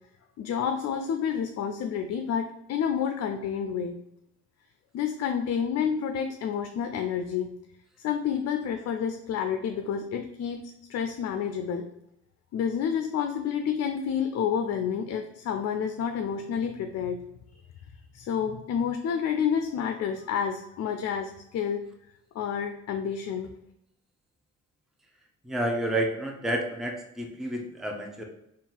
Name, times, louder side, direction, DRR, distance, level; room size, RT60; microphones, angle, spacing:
voice 1, 0.4-4.0 4.9-7.5 8.0-11.9 12.5-17.2 18.1-21.8 22.3-23.5, left 7 dB, 60° left, 6 dB, 0.4 m, -29 dB
voice 2, 25.4-28.2, right 1 dB, ahead, 1 dB, 0.6 m, -30 dB
3.7 x 2.4 x 4.4 m, 0.83 s
cardioid pair, 90°, 30 cm